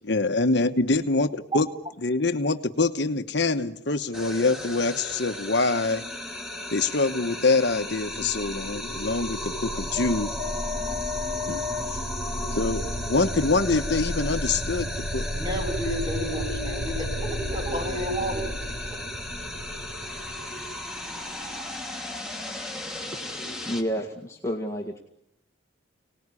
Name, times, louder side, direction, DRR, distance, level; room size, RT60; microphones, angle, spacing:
voice 1, 0.0-1.7 2.0-6.1 6.7-10.3 11.5-12.0 12.5-15.3, left 3 dB, 55° left, 7 dB, 1.1 m, -25 dB
sound 1, 4.1-23.8, left 1 dB, 5° right, 2.8 m, -35 dB
sound 2, 7.9-21.6, equal, 35° right, 7.0 m, -34 dB
voice 2, 15.2-18.5 18.8-19.0, equal, 20° right, 2 dB, 7.9 m, -31 dB
voice 3, 23.7-25.0, equal, 15° left, 1 dB, 2.0 m, -30 dB
30.0 x 19.0 x 9.8 m, 0.81 s
head